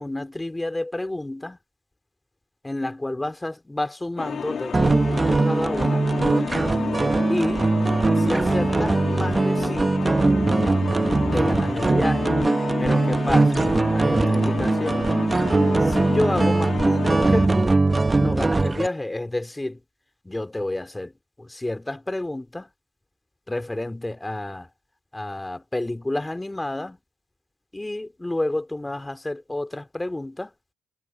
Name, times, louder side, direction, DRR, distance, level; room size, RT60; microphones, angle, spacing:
voice 1, 0.0-1.6 2.6-6.1 7.3-7.7 8.2-10.3 11.3-12.3 12.8-15.1 15.8-17.8 18.2-19.8 20.2-21.1 21.4-22.7 23.5-24.7 25.1-27.0 27.7-30.5, left 1 dB, 10° left, 2.7 m, -30 dB
sound 1, 4.2-17.5, left 7 dB, 55° left, 3.1 m, -31 dB
sound 2, 4.7-18.9, right 3 dB, 20° right, 1.0 m, -21 dB
cardioid pair, 90°, 0 cm